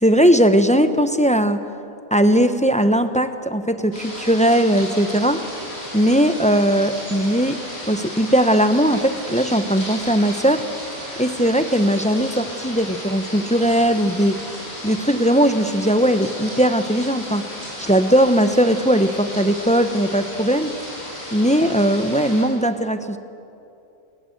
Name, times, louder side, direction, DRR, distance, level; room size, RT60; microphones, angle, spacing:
voice 1, 0.0-1.6 2.1-5.4 5.9-10.6 11.2-14.4 14.8-17.5 17.8-20.8 21.3-23.2, equal, 5° left, 9 dB, 0.7 m, -18 dB
sound 1, 3.9-22.4, left 1 dB, 50° left, 8.4 m, -34 dB
29.0 x 19.5 x 8.0 m, 2.7 s
omnidirectional pair, 1.5 m